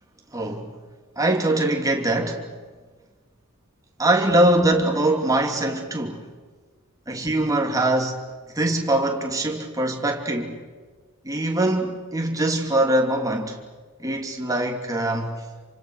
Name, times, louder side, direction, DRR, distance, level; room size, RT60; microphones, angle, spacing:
voice 1, 0.3-0.8 1.2-2.4 4.0-6.2 7.1-8.2 8.5-10.6 11.2-13.6 14.0-15.4, right 1 dB, 15° right, 2.9 m, -22 dB
28.5 x 25.5 x 6.6 m
head